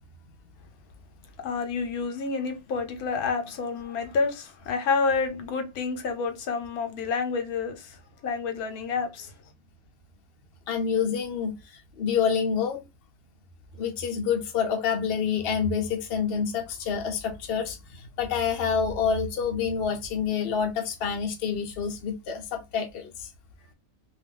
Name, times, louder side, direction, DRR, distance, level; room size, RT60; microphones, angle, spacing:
voice 1, 1.4-8.0 8.2-9.3, left 4 dB, 80° left, 1.2 m, -29 dB
voice 2, 10.7-12.9 13.8-23.3, left 6 dB, 50° left, 0.7 m, -28 dB
2.6 x 2.3 x 3.5 m
omnidirectional pair, 1.6 m